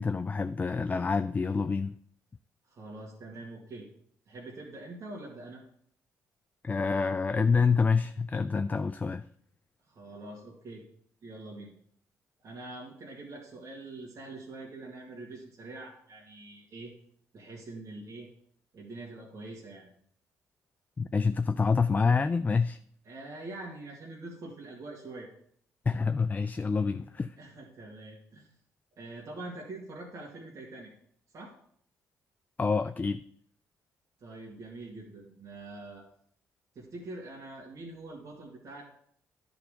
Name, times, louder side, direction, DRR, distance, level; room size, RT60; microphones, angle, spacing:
voice 1, 0.0-2.0 6.6-9.3 21.0-22.8 25.9-27.4 32.6-33.2, left 5 dB, 25° left, 0.3 m, -27 dB
voice 2, 2.7-3.9 4.3-5.6 9.8-10.8 11.2-11.7 12.4-16.9 17.3-18.3 18.7-19.9 23.1-25.3 27.4-28.5 29.0-30.9 31.3-31.5 34.2-36.0 36.8-38.8, right 2 dB, 55° right, 2.1 m, -44 dB
10.5 x 4.1 x 5.1 m
supercardioid pair, 65°, 7 cm